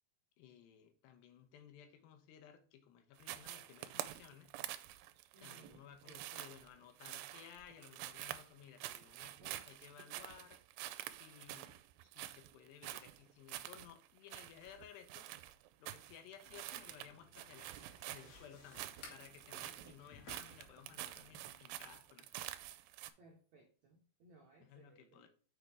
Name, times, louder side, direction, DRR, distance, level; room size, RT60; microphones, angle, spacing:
voice 1, 0.4-4.5 5.4-10.6 11.2-11.8 12.1-15.3 15.8-22.3 24.6-25.3, left 9 dB, 85° left, 7 dB, 3.2 m, -58 dB
sound 1, 3.2-23.1, right 14 dB, 90° right, 2.7 m, -48 dB
voice 2, 5.3-6.3 23.2-25.3, right 2 dB, 75° right, 0 dB, 1.7 m, -64 dB
sound 2, 16.4-21.6, left 4 dB, 70° left, 4.1 m, -60 dB
6.5 x 6.3 x 3.4 m, 0.42 s
omnidirectional pair, 4.8 m